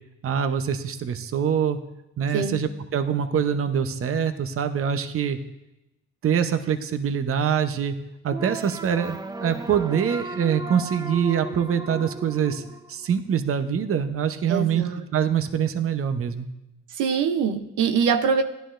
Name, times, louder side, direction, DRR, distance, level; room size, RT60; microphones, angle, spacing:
voice 1, 0.2-1.8 2.2-5.4 6.2-8.0 8.2-12.6 12.9-14.8 15.1-16.5, right 8 dB, 45° right, 9 dB, 0.8 m, -24 dB
sound 1, 8.3-13.3, right 2 dB, 15° right, 0.5 m, -36 dB
voice 2, 14.5-15.0 16.9-18.4, right 6 dB, 90° right, 6 dB, 0.8 m, -23 dB
16.5 x 11.5 x 2.5 m, 0.93 s
cardioid pair, 90°, 30 cm